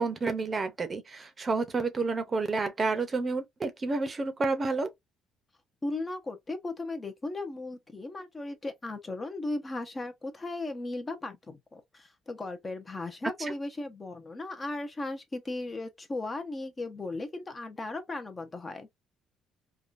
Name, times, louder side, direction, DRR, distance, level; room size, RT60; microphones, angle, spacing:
voice 1, 0.0-4.9 13.4-13.5, right 3 dB, 30° right, 0.7 m, -30 dB
voice 2, 5.8-18.9, left 2 dB, 20° left, 0.8 m, -36 dB
3.6 x 2.3 x 2.5 m
cardioid pair, 110°, 0 cm